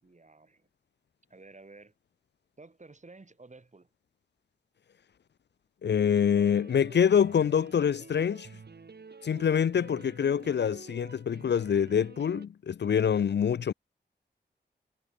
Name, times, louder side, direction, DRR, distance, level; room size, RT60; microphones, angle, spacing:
voice 1, 0.0-0.7 1.3-1.9 2.6-3.9, right 3 dB, 40° right, 7.8 m, -52 dB
voice 2, 5.8-8.5 9.2-13.7, left 8 dB, 70° left, 0.5 m, -25 dB
sound 1, 6.4-12.5, right 4 dB, 60° right, 5.6 m, -49 dB
wide cardioid pair, 65°, 19 cm